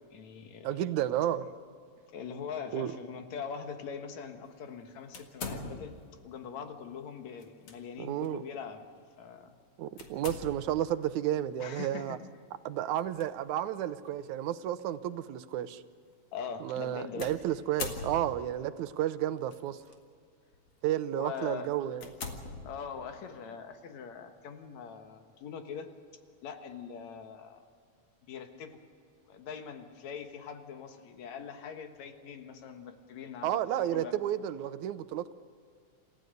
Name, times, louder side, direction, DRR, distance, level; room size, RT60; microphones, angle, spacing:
voice 1, 0.1-0.8 2.1-6.0 6.2-8.8 9.2-9.6 11.6-12.2 16.3-17.3 21.1-21.7 22.6-25.9 26.4-27.6 28.3-28.8 29.3-34.1, left 6 dB, 75° left, 2.7 m, -42 dB
voice 2, 0.6-1.5 2.7-3.0 8.0-8.4 9.8-12.2 12.7-15.8 16.6-19.8 20.8-22.1 33.4-35.3, right 12 dB, 85° right, 2.2 m, -32 dB
sound 1, 5.1-6.1 7.4-7.8 8.2-8.3 10.0-10.9 12.9-13.2 14.1-14.2 17.2-18.6 19.5-19.9 20.5-20.7 21.3-21.4 22.0-23.2, left 4 dB, 55° left, 2.7 m, -41 dB
28.0 x 15.0 x 6.7 m
omnidirectional pair, 3.3 m